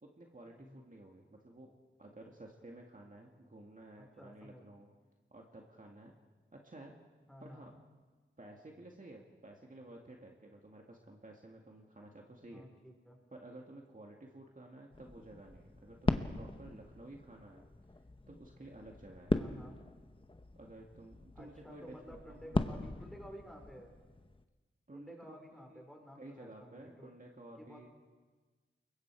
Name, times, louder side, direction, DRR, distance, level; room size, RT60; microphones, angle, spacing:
voice 1, 0.0-1.7 2.0-4.9 5.3-6.2 6.5-6.9 7.4-7.7 8.4-12.7 13.3-17.6 18.3-19.4 20.6-23.0 24.9-25.8 26.2-27.9, right 1 dB, 40° right, 0 dB, 2.2 m, -53 dB
voice 2, 4.2-4.7 7.3-7.7 12.5-13.2 19.4-19.8 21.3-24.0 24.9-27.1 27.6-27.9, equal, ahead, 1 dB, 4.6 m, -53 dB
sound 1, 14.9-24.4, left 2 dB, 25° left, 1.0 m, -39 dB
29.0 x 22.5 x 4.8 m, 1.3 s
wide cardioid pair, 80°, 21 cm